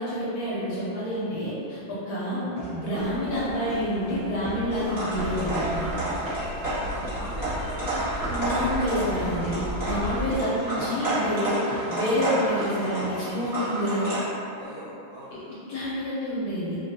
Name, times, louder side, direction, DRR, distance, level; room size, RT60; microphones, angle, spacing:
voice 1, 0.0-5.9 8.3-14.1 15.7-16.8, equal, 65° left, -9 dB, 0.9 m, -28 dB
sound 1, 2.6-3.8 4.1-4.9 5.2-8.7 9.0-9.5 9.9-10.0 10.3-10.4 10.8-10.9 11.2-11.4 11.7-12.2 12.6-13.1 13.4-13.5, right 1 dB, 50° right, 0.8 m, -36 dB
sound 2, 3.0-10.4, left 1 dB, 50° left, 0.6 m, -37 dB
sound 3, 4.7-14.2, right 1 dB, 35° right, 1.1 m, -31 dB
voice 2, 6.7-8.0 14.6-15.6, equal, 85° right, -12 dB, 0.6 m, -44 dB
2.6 x 2.6 x 2.6 m, 2.7 s
omnidirectional pair, 2.0 m